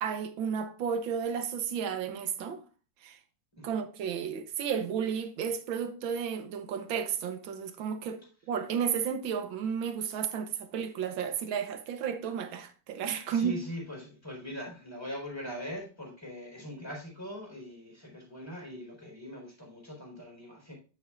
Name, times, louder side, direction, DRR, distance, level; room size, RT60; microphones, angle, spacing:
voice 1, 0.0-2.6 3.0-3.2 3.6-13.6, right 7 dB, 75° right, 1.7 m, -33 dB
voice 2, 13.3-20.7, equal, 10° left, 4.0 m, -41 dB
9.4 x 8.2 x 2.4 m
omnidirectional pair, 2.2 m